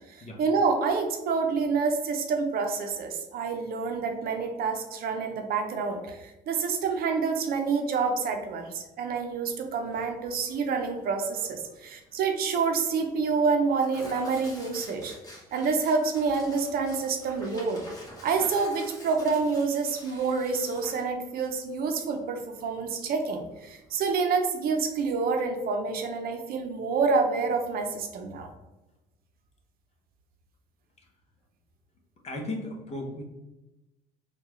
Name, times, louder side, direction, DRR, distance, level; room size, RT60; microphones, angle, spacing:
voice 1, 0.1-15.1 15.5-17.8 18.2-28.5, right 4 dB, 60° right, 4 dB, 0.6 m, -28 dB
Tearing, 9.8-24.1, left 1 dB, 20° left, 1.2 m, -49 dB
voice 2, 32.2-33.2, left 1 dB, 40° left, 1 dB, 0.8 m, -35 dB
3.7 x 2.3 x 3.1 m, 1.0 s
cardioid pair, 110°, 17 cm